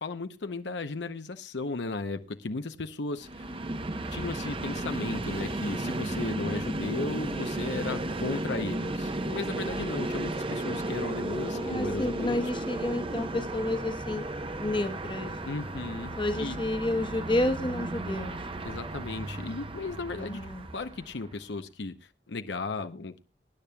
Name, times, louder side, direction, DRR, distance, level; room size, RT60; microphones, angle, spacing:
voice 1, 0.0-3.5 4.1-12.5 15.5-16.6 18.6-20.4 20.7-23.2, left 3 dB, 70° left, 0.7 m, -35 dB
Train, 3.2-21.3, right 1 dB, 30° right, 0.8 m, -34 dB
voice 2, 11.5-14.2 14.6-15.3 16.2-18.4 20.2-20.7, left 1 dB, 25° left, 1.1 m, -30 dB
23.5 x 10.0 x 2.3 m
head